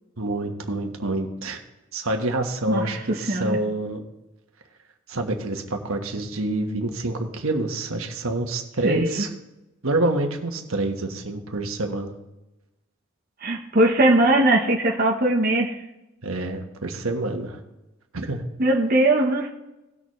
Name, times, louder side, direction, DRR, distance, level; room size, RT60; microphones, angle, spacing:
voice 1, 0.2-1.6 1.9-4.0 5.1-9.3 9.8-12.1 16.2-17.6 18.1-18.4, right 2 dB, 80° right, 4 dB, 1.3 m, -27 dB
voice 2, 2.7-3.6 8.8-9.2 13.4-15.8 18.6-19.5, right 1 dB, 45° right, 0 dB, 0.9 m, -20 dB
18.0 x 6.7 x 3.2 m, 0.98 s
head